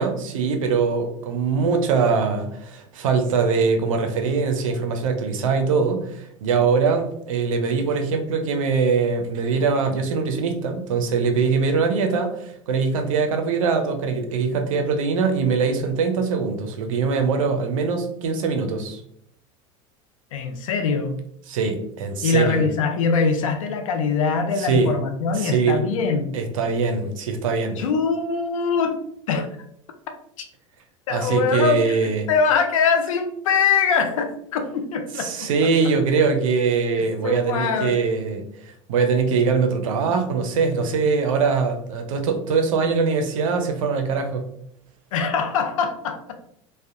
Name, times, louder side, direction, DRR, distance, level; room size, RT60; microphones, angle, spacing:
voice 1, 0.0-19.0 21.5-22.7 24.6-24.9 25.3-25.8 26.3-27.8 31.1-32.3 35.2-44.5, right 5 dB, 85° right, 5 dB, 0.5 m, -22 dB
voice 2, 20.3-21.1 22.2-26.3 27.8-29.0 29.3-29.5 30.4-30.5 31.1-35.5 37.0-38.0 45.1-46.3, left 5 dB, 85° left, 5 dB, 0.4 m, -23 dB
2.6 x 2.1 x 2.4 m, 0.70 s
hypercardioid pair, 90°, 17 cm